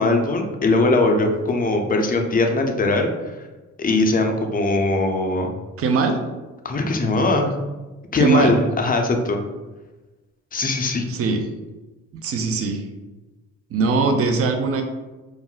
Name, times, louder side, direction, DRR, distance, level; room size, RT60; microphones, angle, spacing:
voice 1, 0.0-3.1 3.8-5.5 6.6-7.5 8.1-9.4 10.5-11.1, left 2 dB, 30° left, 4 dB, 0.4 m, -20 dB
voice 2, 5.8-6.2 8.1-8.5 11.1-11.5 12.2-12.8 13.7-14.8, right 4 dB, 50° right, 5 dB, 0.5 m, -20 dB
2.4 x 2.0 x 3.7 m, 1.2 s
cardioid pair, 90°, 30 cm